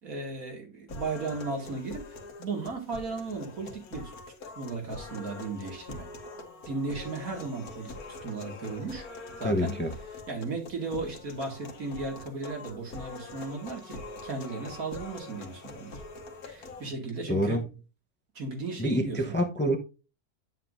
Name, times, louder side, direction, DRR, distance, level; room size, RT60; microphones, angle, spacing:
voice 1, 0.0-2.0 2.4-4.1 4.6-6.1 6.7-7.9 8.2-9.1 9.4-9.8 10.3-16.0 16.5-17.6 18.3-19.4, right 3 dB, 70° right, 2.7 m, -35 dB
sound 1, 0.9-16.9, left 3 dB, 80° left, 1.8 m, -44 dB
voice 2, 9.4-9.9 17.3-17.6 18.8-19.8, equal, 10° left, 0.8 m, -26 dB
9.4 x 7.5 x 2.6 m
omnidirectional pair, 1.5 m